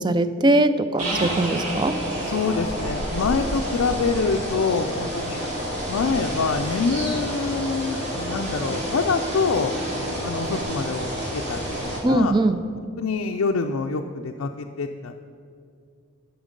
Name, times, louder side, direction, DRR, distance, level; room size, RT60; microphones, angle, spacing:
voice 1, 0.0-2.0 12.0-12.6, right 1 dB, 20° right, 12 dB, 0.3 m, -21 dB
sound 1, 1.0-12.0, equal, 50° right, 2.6 m, -29 dB
sound 2, 1.0-4.6, right 1 dB, 90° right, 2.5 m, -33 dB
voice 2, 2.2-5.4 5.9-9.8 10.2-12.3 13.0-15.1, left 4 dB, 70° left, 2 dB, 0.4 m, -26 dB
11.0 x 7.1 x 5.2 m, 2.4 s
head